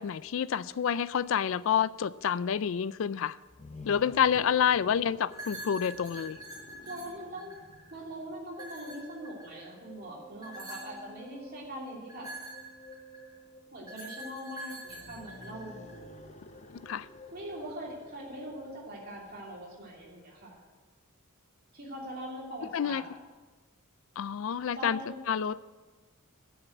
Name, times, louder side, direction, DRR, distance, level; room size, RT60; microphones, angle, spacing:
voice 1, 0.0-3.4 3.9-6.4 16.8-17.1 22.7-23.0 24.2-25.0 25.3-25.6, left 8 dB, 65° left, 18 dB, 0.3 m, -28 dB
sound 1, 3.4-8.6 14.9-20.5, left 2 dB, 30° left, 0.7 m, -52 dB
sound 2, 5.3-8.0 8.5-9.7 10.4-11.1 12.1-13.3 13.9-15.9, right 1 dB, 20° right, 4.3 m, -45 dB
voice 2, 6.8-7.6 7.9-12.3 13.7-15.8 17.3-20.6 21.7-23.1 24.7-25.2, right 1 dB, 45° right, -3 dB, 2.8 m, -42 dB
sound 3, 8.6-18.7, right 1 dB, 45° left, 1.9 m, -53 dB
9.1 x 7.2 x 8.2 m, 1.3 s
head